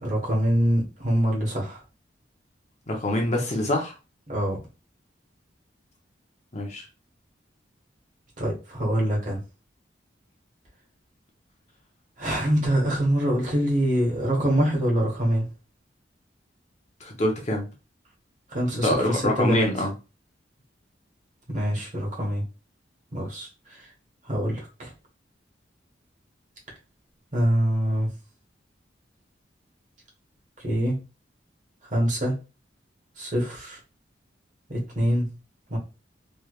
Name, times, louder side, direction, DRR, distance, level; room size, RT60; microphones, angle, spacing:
voice 1, 0.0-1.8 4.3-4.6 8.4-9.4 12.2-15.5 18.5-19.7 21.5-22.4 23.1-23.9 24.3-24.9 27.3-28.1 30.6-31.0 31.9-32.3 33.2-33.8 34.7-35.3 35.7-35.8, equal, 40° right, -1 dB, 1.3 m, -24 dB
voice 2, 2.9-3.9 6.5-6.8 17.0-17.7 18.8-19.9, left 1 dB, 40° left, 1 dB, 0.8 m, -25 dB
3.2 x 3.1 x 2.4 m, 0.31 s
head